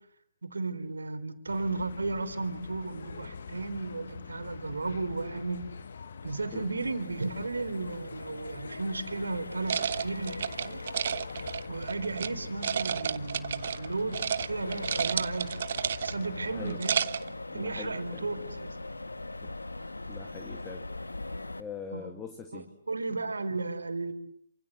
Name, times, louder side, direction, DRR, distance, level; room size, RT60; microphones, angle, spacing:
voice 1, 0.4-5.7 6.2-10.4 10.6-10.8 11.7-15.5 16.0-17.1 17.5-18.7 21.9-22.1 22.5-24.1, right 3 dB, 75° right, 8 dB, 3.7 m, -34 dB
sound 1, 1.5-16.8, left 5 dB, 60° left, 1.6 m, -45 dB
Accelerating revving vroom, 7.0-21.6, left 2 dB, 80° left, 1.8 m, -42 dB
sound 2, 9.7-12.3 12.6-13.9 14.1-14.5 14.7-16.3 16.7-17.3, right 7 dB, 50° right, 1.1 m, -31 dB
voice 2, 17.5-18.3 19.4-19.5 20.1-20.9 21.6-22.7, left 6 dB, 15° left, 6 dB, 2.5 m, -43 dB
28.0 x 26.5 x 7.9 m, 0.66 s
figure-of-eight pair, 130°, 0 cm